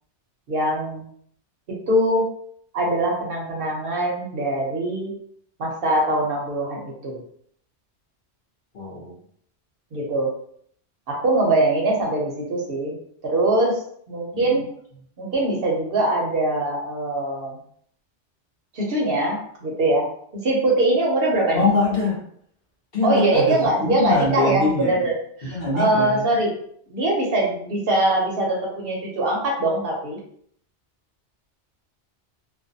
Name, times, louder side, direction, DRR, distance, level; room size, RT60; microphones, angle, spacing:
voice 1, 0.5-1.0 1.7-2.3 2.7-5.1 5.6-7.2 9.9-10.3 11.1-13.0 13.2-13.8 14.1-14.6 15.2-17.6 18.7-20.1 20.3-21.7 23.0-25.1 25.4-26.5 26.9-30.2, right 1 dB, 60° right, -2 dB, 0.8 m, -22 dB
voice 2, 8.7-9.1 14.3-14.6 21.5-22.2 22.9-23.6 23.8-25.0 25.5-26.3, left 3 dB, 50° left, -4 dB, 0.8 m, -23 dB
2.4 x 2.1 x 2.6 m, 0.64 s
omnidirectional pair, 1.2 m